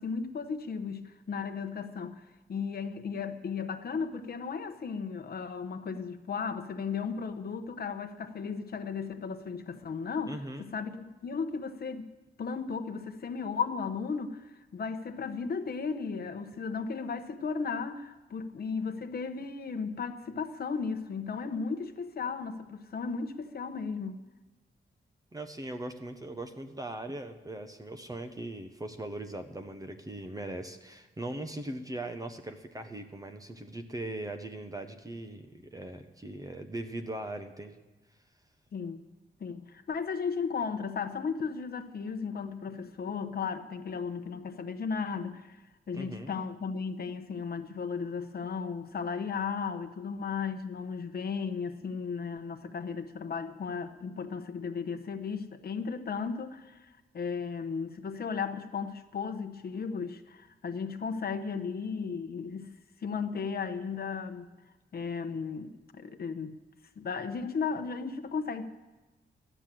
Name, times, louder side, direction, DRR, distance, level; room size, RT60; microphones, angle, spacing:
voice 1, 0.0-2.2 2.5-12.1 12.4-24.2 38.7-39.0 39.4-45.6 45.9-62.7 63.0-64.5 64.9-66.6 67.0-68.7, left 5 dB, 50° left, 7 dB, 0.9 m, -35 dB
voice 2, 10.3-10.7 25.3-37.8 45.9-46.3, right 1 dB, 20° right, 6 dB, 0.7 m, -40 dB
13.5 x 10.0 x 7.6 m, 1.1 s
wide cardioid pair, 165°, 19 cm